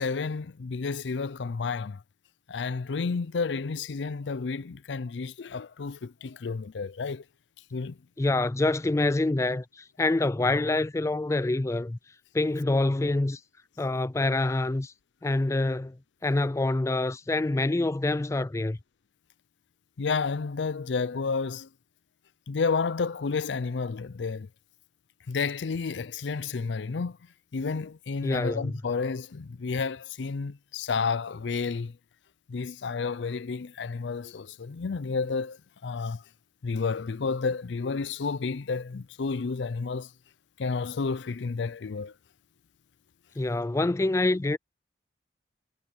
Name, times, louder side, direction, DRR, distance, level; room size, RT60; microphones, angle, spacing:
voice 1, 0.0-2.0 2.5-7.2 7.7-8.0 20.0-21.7 22.5-24.5 25.3-27.2 27.5-31.9 32.5-35.6 35.8-36.2 36.6-40.1 40.6-42.1, left 4 dB, 85° left, 0.5 m, -31 dB
voice 2, 8.2-12.0 12.3-13.4 13.8-14.9 15.2-16.0 16.2-18.8 28.2-28.7 43.4-44.6, left 2 dB, 15° left, 0.3 m, -26 dB
head